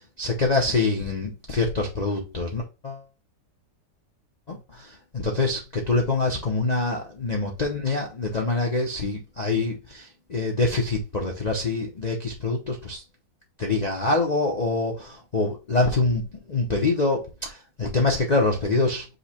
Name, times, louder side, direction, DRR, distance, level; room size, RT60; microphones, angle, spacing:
voice 1, 0.2-3.0 4.5-13.0 13.6-16.2 16.5-19.0, left 3 dB, 70° left, 0.4 m, -25 dB
5.4 x 2.1 x 4.2 m
omnidirectional pair, 1.9 m